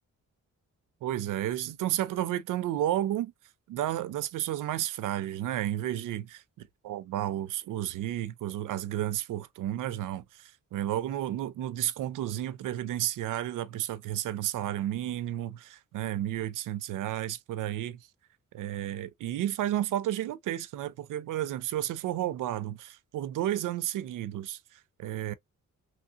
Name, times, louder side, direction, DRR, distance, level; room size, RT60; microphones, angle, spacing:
voice 1, 1.0-3.3 3.7-6.4 6.8-18.1 18.5-25.3, right 12 dB, 85° right, 0.5 m, -32 dB
3.1 x 2.7 x 2.4 m
wide cardioid pair, 155°, 31 cm